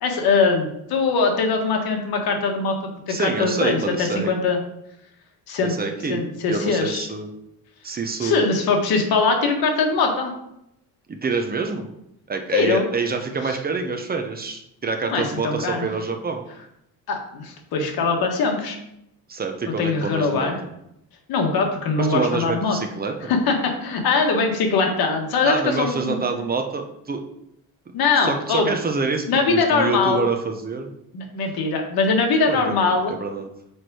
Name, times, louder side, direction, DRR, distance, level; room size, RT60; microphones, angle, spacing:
voice 1, 0.0-2.8 3.1-4.6 5.5-5.7 6.1-7.1 8.2-10.3 12.5-12.9 15.1-15.9 17.1-18.8 19.8-20.6 21.3-22.8 23.3-26.2 27.9-28.7 29.3-30.2 31.1-33.1, left 4 dB, 80° left, 3 dB, 1.6 m, -21 dB
voice 2, 3.1-4.3 5.6-7.3 7.8-8.4 11.1-11.9 12.3-16.4 19.3-20.7 22.0-23.3 25.5-27.2 28.2-30.9 32.5-33.5, right 4 dB, 25° right, 4 dB, 0.8 m, -26 dB
6.2 x 4.7 x 4.8 m, 0.78 s
cardioid pair, 135°, 36 cm